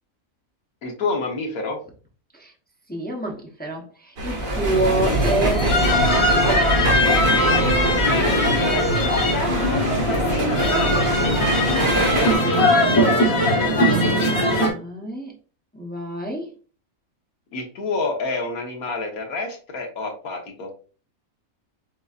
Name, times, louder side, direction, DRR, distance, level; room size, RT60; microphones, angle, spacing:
voice 1, 0.8-1.8 9.0-9.2 9.9-10.5 17.5-20.7, left 3 dB, 85° left, 2 dB, 1.6 m, -28 dB
voice 2, 2.9-6.7 12.9-13.3 14.5-15.3 15.7-16.5, right 2 dB, 10° left, 1 dB, 0.6 m, -28 dB
sound 1, 4.2-12.3, right 2 dB, 70° right, 1.8 m, -25 dB
sound 2, 4.4-14.7, left 1 dB, 70° left, 1.8 m, -20 dB
6.9 x 2.6 x 2.4 m, 0.38 s
omnidirectional pair, 1.5 m